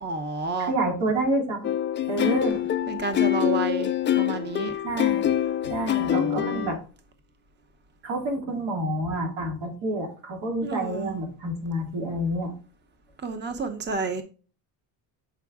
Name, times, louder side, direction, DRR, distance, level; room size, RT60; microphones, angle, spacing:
voice 1, 0.0-0.7 2.2-2.4 2.9-4.7 6.0-6.7 10.6-11.2 13.2-14.2, right 4 dB, 25° right, 0.8 m, -31 dB
voice 2, 0.6-1.7 2.1-2.6 4.8-5.2 5.7-6.8 8.0-12.5, right 1 dB, 85° right, 2.2 m, -28 dB
sound 1, 1.6-6.7, left 11 dB, 30° left, 0.4 m, -25 dB
7.4 x 4.7 x 3.5 m
cardioid pair, 120°, 42 cm